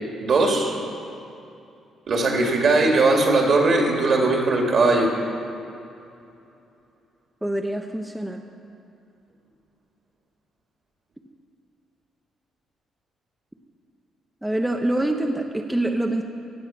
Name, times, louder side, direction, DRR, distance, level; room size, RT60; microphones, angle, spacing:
voice 1, 0.2-0.7 2.1-5.1, right 3 dB, 55° right, 1 dB, 2.4 m, -19 dB
voice 2, 7.4-8.4 14.4-16.2, right 1 dB, 10° right, 3 dB, 0.8 m, -25 dB
17.0 x 7.7 x 5.8 m, 2.7 s
cardioid pair, 90°, 0 cm